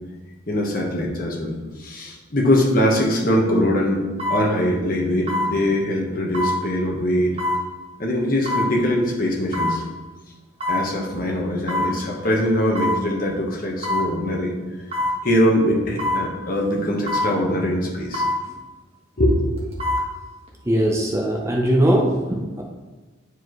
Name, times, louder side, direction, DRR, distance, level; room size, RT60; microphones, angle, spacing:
voice 1, 0.5-4.0 4.3-7.4 8.0-9.9 10.7-14.5 15.2-18.2 19.2-19.7, left 1 dB, 45° left, -1 dB, 1.3 m, -22 dB
sound 1, 3.0-3.2 4.2-4.4 5.3-5.5 6.3-6.6 7.4-7.6 8.5-8.7 9.5-9.8 10.6-10.9 11.7-11.9 12.7-13.0 13.8-14.1 14.9-15.2 16.0-16.2 17.1-17.3 18.1-18.4 19.6-20.1 20.5-20.6, left 1 dB, 30° right, 1.4 m, -23 dB
voice 2, 20.6-22.6, right 1 dB, 15° right, -1 dB, 0.7 m, -20 dB
9.7 x 4.8 x 3.1 m, 1.2 s
head